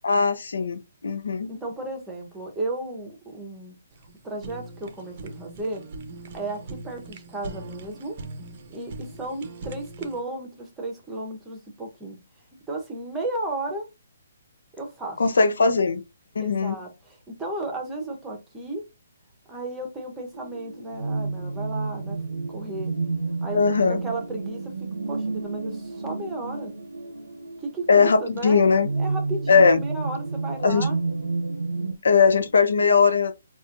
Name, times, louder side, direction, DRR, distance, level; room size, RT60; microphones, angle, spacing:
voice 1, 0.0-1.5 15.2-16.0 16.3-16.8 23.5-24.0 27.9-28.9 29.5-29.8 30.6-30.9 32.0-33.3, left 5 dB, 80° left, 0.6 m, -19 dB
voice 2, 1.4-3.8 4.2-5.8 6.3-8.2 8.7-12.2 12.7-13.9 14.8-15.2 16.4-18.8 19.5-22.2 22.5-22.9 23.4-23.6 23.9-26.7 27.6-31.0, right 2 dB, 10° right, 0.8 m, -34 dB
Fire, 3.9-10.2, right 2 dB, 40° right, 0.6 m, -41 dB
sound 1, 20.3-32.0, right 3 dB, 90° right, 0.6 m, -31 dB
4.1 x 2.4 x 2.6 m
hypercardioid pair, 165°, 0 cm